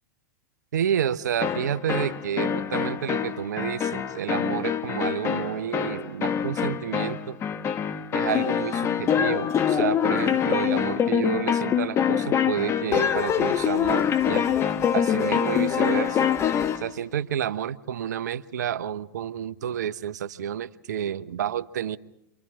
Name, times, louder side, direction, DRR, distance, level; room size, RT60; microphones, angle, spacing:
voice 1, 0.7-7.4 8.1-14.5 14.9-16.3 16.8-22.0, right 9 dB, 75° right, 15 dB, 0.8 m, -30 dB
sound 1, 1.4-16.9, left 8 dB, 30° left, 1.2 m, -25 dB
29.5 x 26.0 x 3.7 m, 0.83 s
hypercardioid pair, 100°, 9 cm